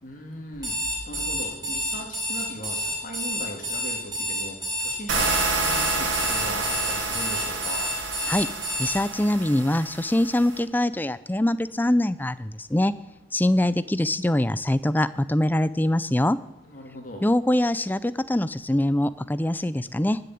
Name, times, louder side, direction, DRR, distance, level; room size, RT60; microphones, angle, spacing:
voice 1, 0.0-7.9 13.4-13.7 16.6-17.2, equal, 45° left, 2 dB, 2.8 m, -39 dB
Alarm, 0.5-9.0, equal, 20° right, 4.7 m, -29 dB
sound 1, 5.1-10.6, right 3 dB, 90° right, 2.7 m, -29 dB
voice 2, 8.8-12.9 13.3-16.4 17.2-20.2, left 1 dB, 10° left, 15 dB, 0.4 m, -23 dB
16.0 x 6.9 x 9.4 m, 0.89 s
head